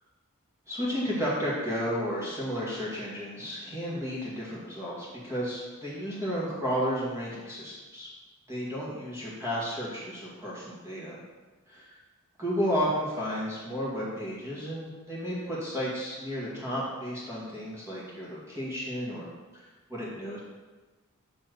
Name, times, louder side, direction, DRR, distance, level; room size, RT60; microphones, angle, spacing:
voice 1, 0.7-8.1 8.5-11.2 11.7-11.9 12.4-19.3 19.5-20.4, equal, 15° right, -8 dB, 1.9 m, -32 dB
7.2 x 3.3 x 6.2 m, 1.3 s
head